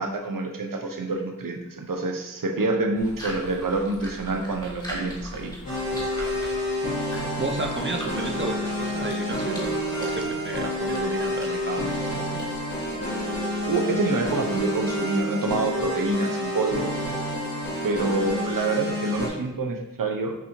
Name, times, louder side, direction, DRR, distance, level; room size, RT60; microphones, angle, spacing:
voice 1, 0.0-5.5 13.7-16.9 17.8-20.3, right 3 dB, 75° right, 3 dB, 0.7 m, -27 dB
sound 1, 2.9-13.8, equal, 10° left, 1.3 m, -42 dB
sound 2, 5.7-19.3, left 1 dB, 80° left, 1.3 m, -29 dB
voice 2, 7.4-12.4 18.0-18.1, right 2 dB, 35° right, 3 dB, 0.5 m, -32 dB
5.9 x 2.7 x 3.0 m, 0.94 s
wide cardioid pair, 45°, 34 cm